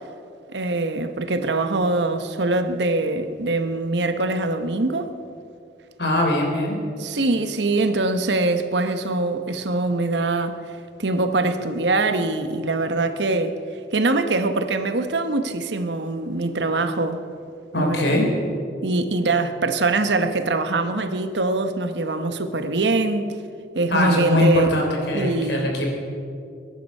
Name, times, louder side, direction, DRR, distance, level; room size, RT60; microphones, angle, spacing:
voice 1, 0.5-5.1 7.0-10.6 11.0-13.6 13.9-17.2 17.7-18.1 18.8-23.4 23.7-24.7 25.1-25.7, right 2 dB, 80° right, 1.0 m, -23 dB
voice 2, 6.0-6.7 17.7-18.3 23.9-25.9, left 1 dB, 75° left, 3.4 m, -21 dB
21.5 x 10.5 x 5.4 m
head